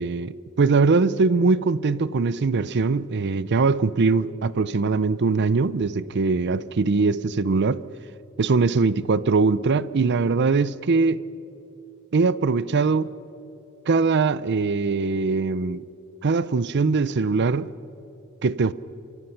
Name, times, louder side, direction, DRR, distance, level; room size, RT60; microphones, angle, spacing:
voice 1, 0.0-7.8 8.4-11.2 12.1-13.1 13.9-15.8 16.2-17.7 18.4-18.7, right 4 dB, 55° right, 0.5 m, -21 dB
28.0 x 25.5 x 5.8 m
head